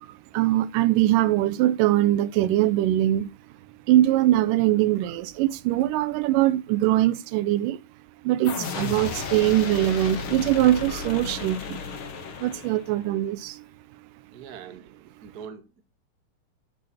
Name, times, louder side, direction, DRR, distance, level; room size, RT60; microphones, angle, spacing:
voice 1, 0.1-3.3 3.9-7.8 8.2-11.8 12.4-13.6, right 14 dB, 85° right, 2.2 m, -22 dB
sound 1, 8.4-13.1, left 5 dB, 50° left, 1.8 m, -34 dB
voice 2, 14.3-14.9 15.2-15.8, right 7 dB, 50° right, 1.1 m, -42 dB
12.5 x 4.8 x 4.1 m
omnidirectional pair, 3.7 m